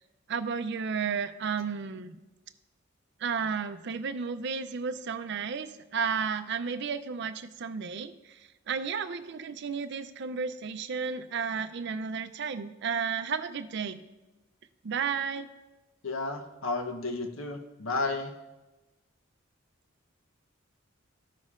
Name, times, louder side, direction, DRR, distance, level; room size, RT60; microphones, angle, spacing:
voice 1, 0.3-2.2 3.2-14.0 14.8-15.5, right 6 dB, 55° right, 10 dB, 0.4 m, -33 dB
voice 2, 16.0-18.3, left 3 dB, 75° left, 5 dB, 0.9 m, -32 dB
14.0 x 6.3 x 2.5 m, 1.1 s
head